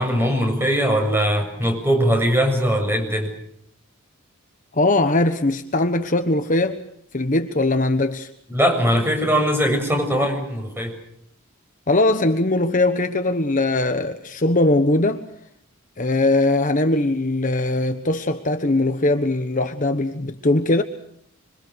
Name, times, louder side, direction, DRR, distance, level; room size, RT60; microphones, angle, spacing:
voice 1, 0.0-3.3 8.5-10.9, equal, 10° right, 7.4 m, -20 dB
voice 2, 4.7-6.8 7.1-8.3 11.9-15.2 16.0-20.8, left 2 dB, 35° left, 1.3 m, -20 dB
27.0 x 24.5 x 6.4 m
head